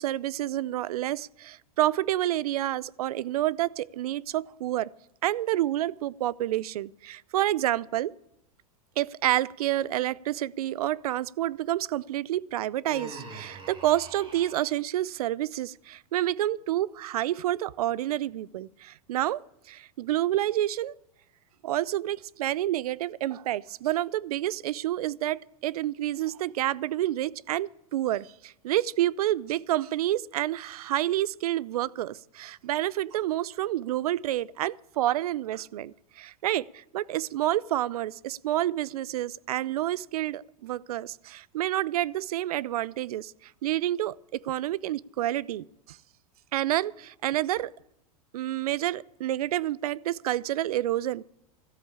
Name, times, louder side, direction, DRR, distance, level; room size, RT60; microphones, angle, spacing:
voice 1, 0.0-4.9 5.2-8.1 9.0-19.4 19.7-20.9 21.6-46.0 46.5-47.7 48.3-51.2, right 14 dB, 80° right, 0.5 m, -29 dB
Human voice, 12.9-14.8, right 2 dB, 25° right, 3.7 m, -43 dB
13.5 x 8.2 x 8.6 m
hypercardioid pair, 110°, 19 cm